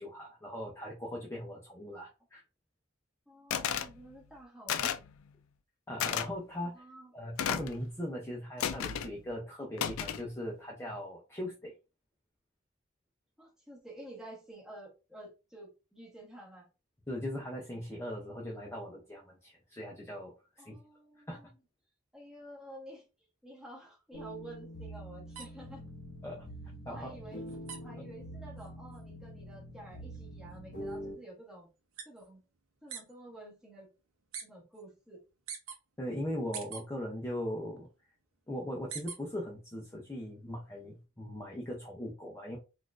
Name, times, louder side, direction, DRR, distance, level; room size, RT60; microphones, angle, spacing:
voice 1, 0.0-2.4 5.9-6.8 7.1-11.7 17.1-20.8 21.3-21.4 26.2-26.5 26.9-27.2 28.0-28.1 36.0-37.9 38.5-42.6, equal, 15° left, -2 dB, 0.5 m, -39 dB
voice 2, 3.3-5.0 6.6-7.1 13.4-16.7 20.6-21.5 22.1-23.0 23.4-25.8 26.8-27.4 27.8-31.7 32.0-32.4 32.8-33.9 34.4-35.2, right 1 dB, ahead, -4 dB, 1.4 m, -50 dB
sound 1, 3.5-3.9 4.7-5.1 6.0-6.3 7.4-7.8 8.6-9.1 9.8-10.2, left 9 dB, 80° left, 0.3 m, -32 dB
sound 2, 24.1-31.2, equal, 40° left, 1.6 m, -45 dB
sound 3, 25.3-33.1 33.4-34.5 34.7-35.8 36.2-37.4 37.7-39.5 39.8-41.1, right 7 dB, 85° right, 0.7 m, -47 dB
3.9 x 2.4 x 2.4 m, 0.30 s
head